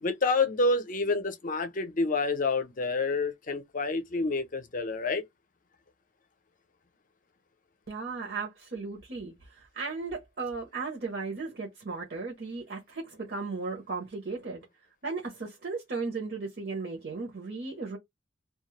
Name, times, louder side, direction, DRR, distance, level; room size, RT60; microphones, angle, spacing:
voice 1, 0.0-5.2, left 3 dB, 45° left, 0.5 m, -28 dB
voice 2, 7.9-14.6 15.0-18.0, right 4 dB, 60° right, 0.8 m, -36 dB
2.3 x 2.0 x 3.0 m
head